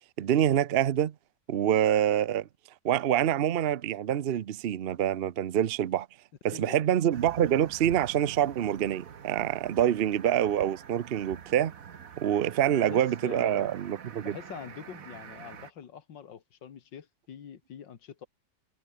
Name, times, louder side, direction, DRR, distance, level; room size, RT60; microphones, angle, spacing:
voice 1, 0.2-1.1 1.5-2.5 2.8-6.1 6.4-11.7 12.2-14.4, right 10 dB, 70° right, 0.5 m, -26 dB
sound 1, 7.1-15.7, right 7 dB, 50° right, 1.6 m, -46 dB
voice 2, 12.7-13.8 14.2-18.3, left 8 dB, 85° left, 2.3 m, -44 dB
omnidirectional pair, 1.9 m